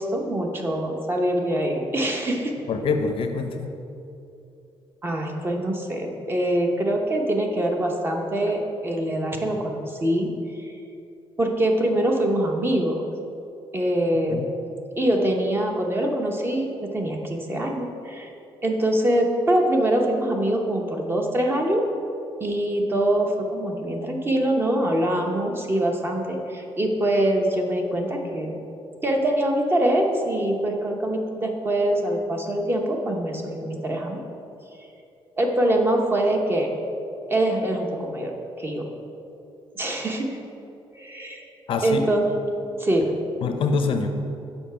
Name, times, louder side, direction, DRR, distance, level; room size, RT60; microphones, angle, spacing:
voice 1, 0.0-2.5 5.0-10.3 10.6-10.7 11.4-13.1 13.7-14.4 15.0-18.3 18.6-21.8 22.4-28.6 29.0-34.2 35.4-36.7 37.3-38.3 38.6-38.9 39.8-40.4 40.9-41.4 41.8-42.3 42.8-43.1, right 1 dB, 20° right, 1 dB, 0.8 m, -24 dB
voice 2, 2.7-3.8 14.3-14.5 41.7-42.0 43.4-44.1, left 4 dB, 60° left, 6 dB, 0.6 m, -25 dB
7.0 x 5.5 x 5.7 m, 2.8 s
cardioid pair, 155°, 10 cm